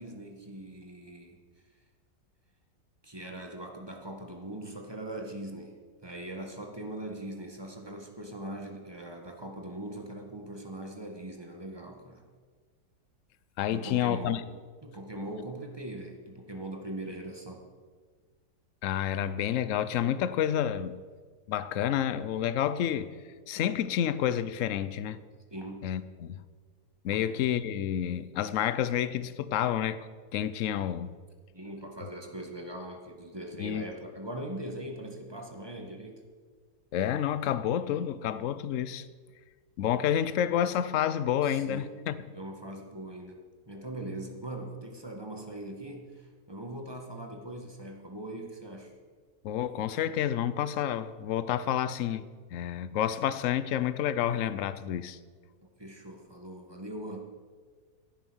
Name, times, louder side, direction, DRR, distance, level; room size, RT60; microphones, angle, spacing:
voice 1, 0.0-1.4 3.0-12.2 13.7-14.5 14.8-17.6 25.5-25.9 27.1-27.3 31.5-36.2 41.4-41.9 42.2-43.4 43.7-48.9 55.8-57.2, right 1 dB, 15° right, 1.6 m, -41 dB
voice 2, 13.6-14.4 18.8-21.0 21.5-23.2 23.5-25.2 25.8-26.4 27.0-30.0 30.3-31.1 33.6-33.8 36.9-39.0 39.8-42.2 49.4-52.2 52.5-55.2, left 10 dB, 60° left, 0.9 m, -29 dB
16.0 x 9.3 x 6.3 m
omnidirectional pair, 1.8 m